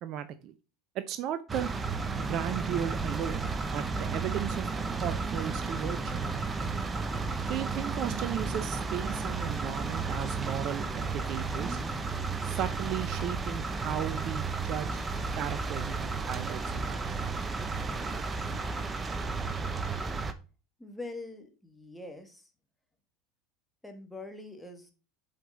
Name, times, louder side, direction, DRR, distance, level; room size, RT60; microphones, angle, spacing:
voice 1, 0.0-0.5 0.9-1.7 2.2-3.4 3.7-4.7 5.0-6.2 7.5-11.8 12.4-14.9 15.3-17.3, right 10 dB, 45° right, 12 dB, 0.7 m, -35 dB
sound 1, 1.5-20.3, right 4 dB, 20° right, 0.9 m, -33 dB
voice 2, 20.8-22.5 23.8-24.9, left 2 dB, 5° left, 4 dB, 1.8 m, -43 dB
7.6 x 5.1 x 4.1 m, 0.33 s
figure-of-eight pair, 75°, 0 cm